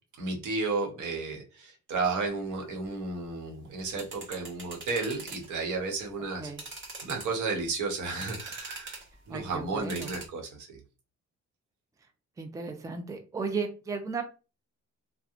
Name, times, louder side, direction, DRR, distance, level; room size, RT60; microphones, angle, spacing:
voice 1, 0.2-6.5 7.0-9.0 9.3-10.8, right 3 dB, 75° right, 2 dB, 1.0 m, -33 dB
sound 1, 3.7-5.5 5.9-6.0 6.5-7.6 8.1-9.1 9.8-10.3, right 3 dB, 40° right, 1.0 m, -43 dB
voice 2, 9.3-10.1 12.4-14.2, right 4 dB, 10° right, 5 dB, 0.5 m, -35 dB
2.9 x 2.2 x 2.4 m, 0.32 s
cardioid pair, 90°, 30 cm